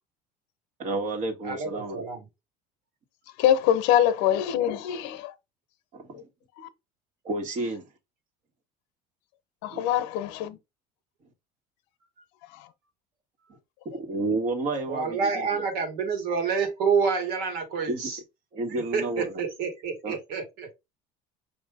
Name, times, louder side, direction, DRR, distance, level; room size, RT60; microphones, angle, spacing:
voice 1, 0.8-2.0 5.9-6.3 7.2-7.8 9.7-9.9 13.8-15.7 17.9-18.0 18.5-19.4 20.0-20.2, right 2 dB, 45° right, 1.4 m, -31 dB
voice 2, 1.4-2.3 14.9-18.2 18.7-20.7, right 5 dB, 75° right, 1.9 m, -28 dB
voice 3, 3.4-5.3 9.6-10.6, left 10 dB, 75° left, 0.8 m, -23 dB
5.4 x 2.7 x 3.5 m
cardioid pair, 125°, 18 cm